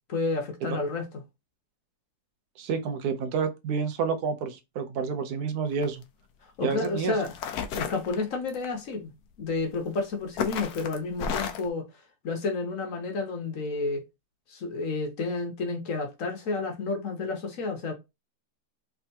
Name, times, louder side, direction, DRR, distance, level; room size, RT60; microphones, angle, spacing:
voice 1, 0.1-1.2 6.6-7.3 7.7-9.1 9.4-11.8 12.2-14.0 14.5-17.9, left 3 dB, 60° left, 1.3 m, -30 dB
voice 2, 2.6-6.0 6.6-7.2, right 5 dB, 75° right, 1.2 m, -29 dB
sound 1, 5.7-6.0 6.8-6.9 7.2-8.7 9.7-10.0 10.4-11.7, left 7 dB, 85° left, 1.1 m, -32 dB
3.5 x 3.4 x 2.8 m
omnidirectional pair, 1.7 m